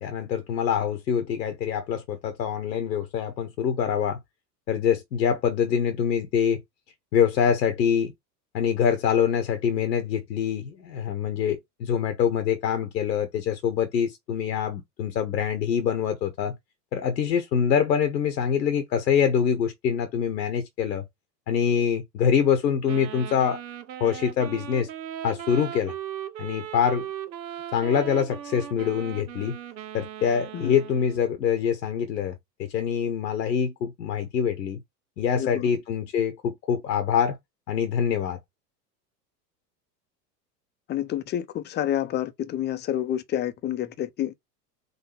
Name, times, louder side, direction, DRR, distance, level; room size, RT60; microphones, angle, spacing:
voice 1, 0.0-4.2 4.7-6.6 7.1-8.1 8.5-16.5 16.9-21.0 21.5-23.6 24.0-24.9 25.2-25.9 26.4-27.0 27.7-29.6 29.9-34.8 35.2-37.4 37.7-38.4, left 7 dB, 85° left, 0.9 m, -25 dB
Wind instrument woodwind instrument, 22.8-31.3, right 10 dB, 90° right, 0.6 m, -38 dB
voice 2, 35.4-35.7 40.9-44.3, left 11 dB, 20° left, 0.5 m, -29 dB
4.0 x 2.6 x 4.3 m
hypercardioid pair, 85°, 50 cm